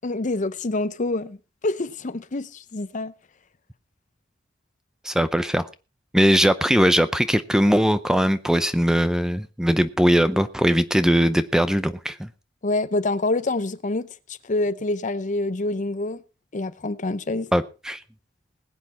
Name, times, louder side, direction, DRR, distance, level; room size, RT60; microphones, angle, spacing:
voice 1, 0.0-1.4 1.6-3.1 12.6-16.2 16.5-17.5, left 2 dB, 40° left, 0.7 m, -26 dB
voice 2, 5.0-5.7 6.1-12.3 17.5-18.0, equal, 5° right, 0.6 m, -20 dB
20.0 x 8.4 x 4.2 m
head